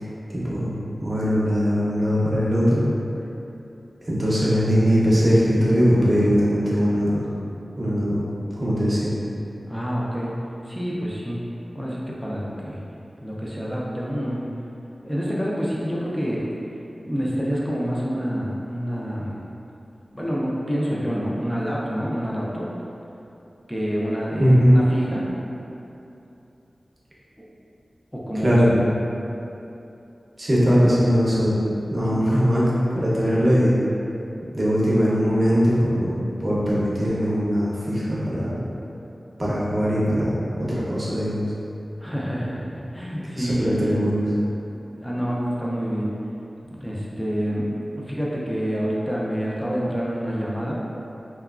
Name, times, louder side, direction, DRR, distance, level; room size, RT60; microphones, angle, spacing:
voice 1, 0.3-2.9 4.1-7.3 7.8-8.2 8.6-9.1 24.4-24.8 28.4-28.7 30.4-31.6 31.9-32.6 32.9-33.8 34.5-38.6 39.4-41.4 43.3-44.3, equal, 40° right, -8 dB, 0.7 m, -20 dB
voice 2, 9.7-10.3 10.7-11.4 11.7-12.8 13.2-14.4 15.0-16.5 17.0-19.4 20.1-22.6 23.7-25.3 27.4-27.5 28.1-28.6 30.6-30.8 32.0-32.4 42.0-43.9 44.9-46.1 46.8-50.7, equal, 5° left, -5 dB, 0.5 m, -27 dB
2.9 x 2.3 x 2.4 m, 2.8 s
wide cardioid pair, 70°, 0 cm